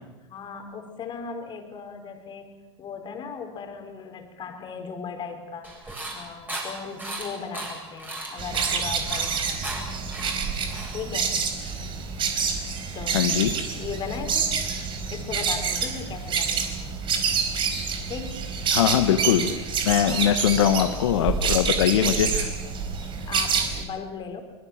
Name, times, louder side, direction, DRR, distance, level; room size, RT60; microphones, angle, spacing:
voice 1, 0.3-2.5 2.8-10.6 10.9-11.4 12.9-13.3 13.8-14.7 15.1-16.8 18.1-18.5 19.9-20.4 22.0-22.3 23.3-24.4, left 6 dB, 30° left, 5 dB, 4.8 m, -37 dB
sound 1, 5.6-11.4, right 2 dB, 10° right, 7.6 m, -37 dB
sound 2, 8.4-23.8, right 6 dB, 35° right, 4.6 m, -27 dB
voice 2, 13.1-13.5 18.7-19.5 19.8-22.5, left 10 dB, 75° left, 7 dB, 1.6 m, -21 dB
25.0 x 22.0 x 7.5 m, 1.1 s
hypercardioid pair, 110°, 15 cm